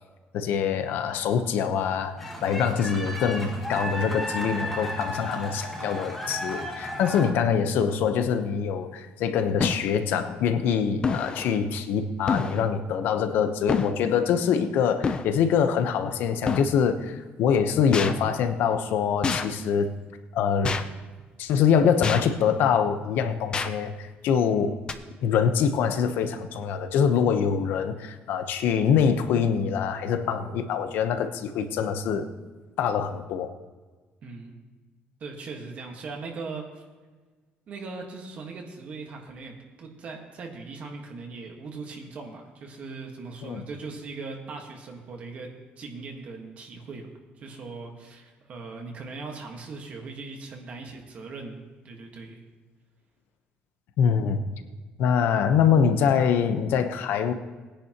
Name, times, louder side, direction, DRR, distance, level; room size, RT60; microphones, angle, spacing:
voice 1, 0.3-19.9 20.3-20.8 21.4-24.8 25.2-32.3 32.8-33.5 43.4-43.6 54.0-54.4 55.0-57.3, left 7 dB, 65° left, 8 dB, 0.9 m, -24 dB
sound 1, 2.2-7.3, equal, 5° left, 1.5 m, -34 dB
sound 2, 8.3-8.5 9.6-9.9 11.0-11.5 12.3-12.6 13.7-14.0 15.0-15.3 16.5-16.7 17.9-18.1 19.2-19.5 20.6-20.9 22.0-22.3 23.5-23.7 24.9-25.0, left 5 dB, 25° left, 0.6 m, -27 dB
voice 2, 34.2-34.6 35.2-36.8 37.7-45.5 45.8-47.1 47.4-52.4, right 4 dB, 40° right, 1 dB, 1.5 m, -39 dB
20.0 x 10.0 x 3.0 m, 1.3 s
cardioid pair, 180°, 4 cm